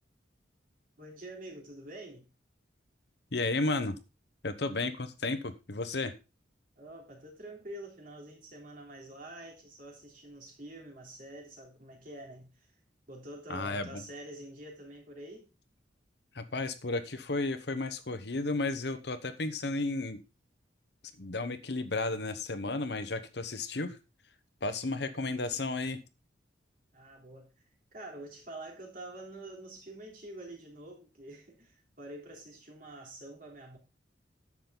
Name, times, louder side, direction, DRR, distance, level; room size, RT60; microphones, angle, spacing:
voice 1, 1.0-2.2 6.8-12.7 13.1-15.5 26.9-27.5 27.9-33.8, right 1 dB, 45° right, 3.2 m, -47 dB
voice 2, 3.3-4.0 4.4-6.1 13.5-14.0 16.3-20.2 21.2-24.0 24.6-26.0, left 2 dB, 60° left, 1.0 m, -33 dB
10.5 x 7.4 x 3.9 m
head